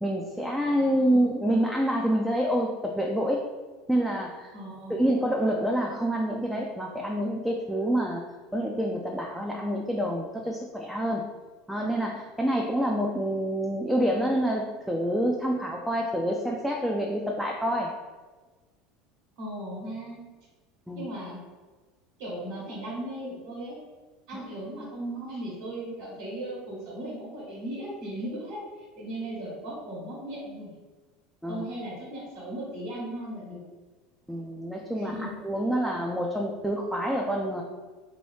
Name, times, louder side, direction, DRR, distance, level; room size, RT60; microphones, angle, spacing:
voice 1, 0.0-3.4 3.9-4.5 4.9-8.2 8.5-11.2 11.7-17.9 20.9-21.0 31.4-31.6 34.3-37.6, equal, ahead, -1 dB, 0.4 m, -27 dB
voice 2, 0.9-1.4 4.5-5.1 19.4-20.2 20.9-21.4 22.2-23.8 24.3-30.7 31.5-33.6 34.9-35.3, right 1 dB, 75° right, -5 dB, 1.2 m, -37 dB
2.7 x 2.5 x 3.4 m, 1.3 s
hypercardioid pair, 95°, 0 cm